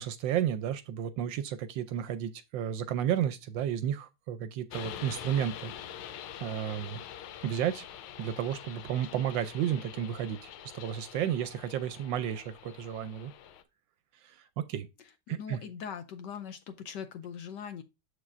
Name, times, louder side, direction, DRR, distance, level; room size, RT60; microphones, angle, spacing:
voice 1, 0.0-5.7 6.4-7.0 7.4-7.8 8.2-13.3 14.2-14.9 15.3-15.6, right 10 dB, 75° right, 1.2 m, -32 dB
sound 1, 4.7-13.6, left 10 dB, 85° left, 1.5 m, -45 dB
voice 2, 15.3-17.8, left 7 dB, 70° left, 1.1 m, -41 dB
7.1 x 6.4 x 2.5 m
omnidirectional pair, 2.3 m